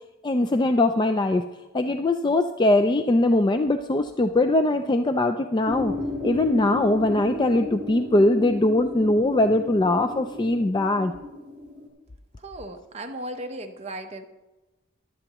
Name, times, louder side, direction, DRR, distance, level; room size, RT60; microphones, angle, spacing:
voice 1, 0.2-1.4 1.7-5.9 6.2-11.1, left 2 dB, 20° left, 7 dB, 0.3 m, -21 dB
sound 1, 5.7-11.9, left 1 dB, 10° right, 3.9 m, -34 dB
voice 2, 12.4-14.3, right 1 dB, 30° right, 5 dB, 0.8 m, -36 dB
14.5 x 11.5 x 3.0 m, 1.1 s
head